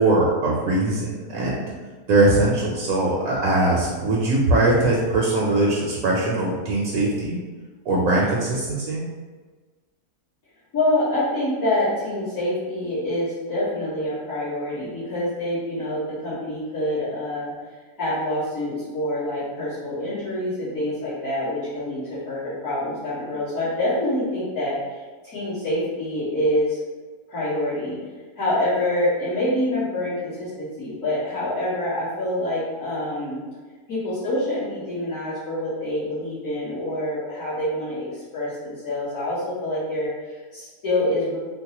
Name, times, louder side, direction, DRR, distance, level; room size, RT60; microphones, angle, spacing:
voice 1, 0.0-1.6 2.1-7.4 7.9-9.0, right 2 dB, 70° right, -4 dB, 1.0 m, -21 dB
voice 2, 10.7-17.5 18.0-25.0 25.2-26.8 27.3-28.0 28.4-33.4 33.9-41.4, left 1 dB, 65° left, -13 dB, 1.9 m, -26 dB
4.4 x 2.0 x 2.8 m, 1.4 s
omnidirectional pair, 1.6 m